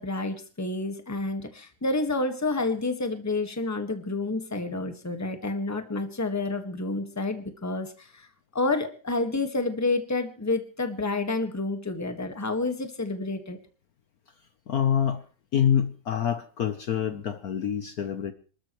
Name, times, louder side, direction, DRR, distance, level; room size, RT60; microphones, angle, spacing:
voice 1, 0.0-8.3 8.5-13.6, left 2 dB, 10° left, 7 dB, 1.4 m, -29 dB
voice 2, 14.7-15.2 15.5-18.3, left 9 dB, 60° left, 10 dB, 1.2 m, -26 dB
27.0 x 13.0 x 3.1 m, 0.38 s
omnidirectional pair, 2.0 m